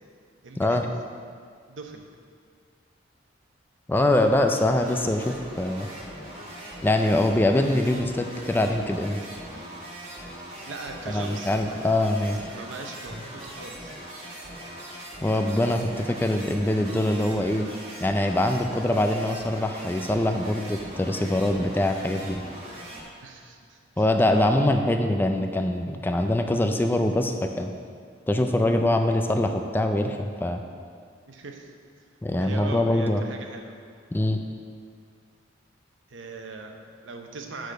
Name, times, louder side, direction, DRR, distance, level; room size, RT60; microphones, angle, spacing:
voice 1, 0.4-0.8 1.7-2.0 10.7-11.8 12.5-14.0 23.2-24.5 31.3-31.7 32.4-33.7 36.1-37.7, right 3 dB, 75° right, 3 dB, 0.8 m, -40 dB
voice 2, 3.9-5.9 6.8-9.2 11.1-12.5 15.2-17.7 18.0-22.4 24.0-27.7 28.3-30.6 32.2-33.2 34.1-34.4, left 1 dB, 10° left, 5 dB, 0.3 m, -23 dB
sound 1, 4.0-23.0, right 1 dB, 30° right, 1.7 m, -41 dB
6.2 x 5.0 x 6.6 m, 2.1 s
head